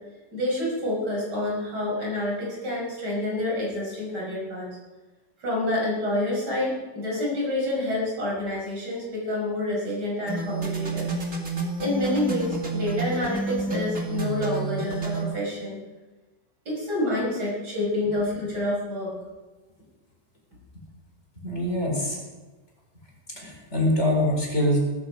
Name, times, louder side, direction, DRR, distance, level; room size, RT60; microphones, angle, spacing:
voice 1, 0.3-4.8 5.4-11.1 11.8-15.8 16.6-19.1, left 1 dB, 65° right, -3 dB, 6.7 m, -28 dB
sound 1, 10.3-15.3, right 3 dB, 45° right, 3.0 m, -29 dB
voice 2, 21.4-22.2 23.3-24.8, left 1 dB, 40° left, -2 dB, 5.1 m, -24 dB
17.5 x 15.5 x 5.1 m, 1.2 s
omnidirectional pair, 1.9 m